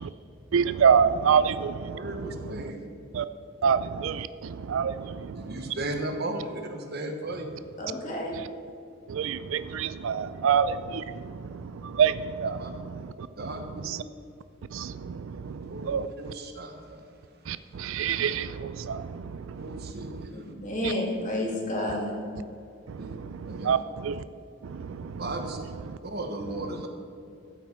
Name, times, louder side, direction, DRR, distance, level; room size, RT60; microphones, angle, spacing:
voice 1, 0.5-2.0 3.1-3.2 3.6-5.4 9.1-11.4 11.8-12.8 13.9-14.0 14.7-16.1 17.5-19.2 19.6-19.7 22.9-23.8 24.0-24.2 24.7-25.1, right 7 dB, 65° right, 14 dB, 0.4 m, -26 dB
voice 2, 1.9-2.9 5.3-7.6 12.6-12.7 13.3-13.9 15.4-17.0 19.6-20.5 23.0-23.2 23.5-23.8 25.2-25.6 26.0-26.9, right 1 dB, 45° right, 5 dB, 1.1 m, -36 dB
voice 3, 7.8-8.4 20.3-22.1, left 1 dB, 35° left, -2 dB, 2.4 m, -30 dB
14.0 x 8.6 x 4.3 m, 2.5 s
head